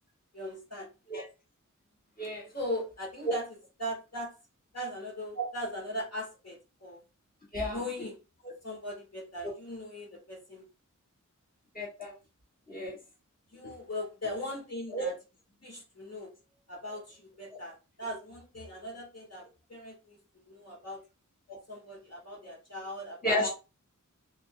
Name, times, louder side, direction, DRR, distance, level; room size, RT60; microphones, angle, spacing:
voice 1, 0.3-0.9 2.5-3.5 3.8-4.4 4.7-7.0 7.6-8.2 8.6-10.7 13.5-15.1 15.6-16.3 16.7-21.0 21.7-23.5, left 1 dB, 50° left, 1.6 m, -39 dB
voice 2, 2.2-2.5 5.4-5.5 7.5-7.8 9.4-9.5 11.7-12.1 12.7-13.0 14.9-15.1 23.2-23.5, equal, 30° left, 1.4 m, -31 dB
3.9 x 3.4 x 2.2 m
wide cardioid pair, 45°, 32 cm